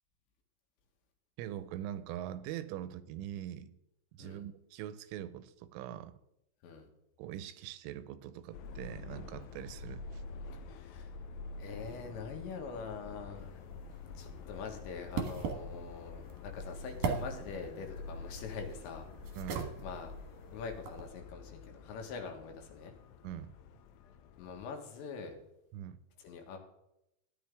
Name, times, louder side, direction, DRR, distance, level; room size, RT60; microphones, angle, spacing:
voice 1, 1.4-3.8 4.1-6.1 7.2-10.2 19.4-19.7 23.2-23.5 25.7-26.0, right 11 dB, 85° right, 13 dB, 3.2 m, -43 dB
Subway metro underground, 8.5-24.7, left 4 dB, 85° left, 2.4 m, -47 dB
voice 2, 10.7-11.1 11.6-13.6 14.2-19.1 19.8-20.1 20.5-22.9 24.4-25.4 26.2-26.6, left 5 dB, 70° left, 3 dB, 3.5 m, -44 dB
sound 1, 13.4-21.1, right 6 dB, 65° right, 2.3 m, -42 dB
15.0 x 10.5 x 3.6 m, 0.83 s
omnidirectional pair, 5.7 m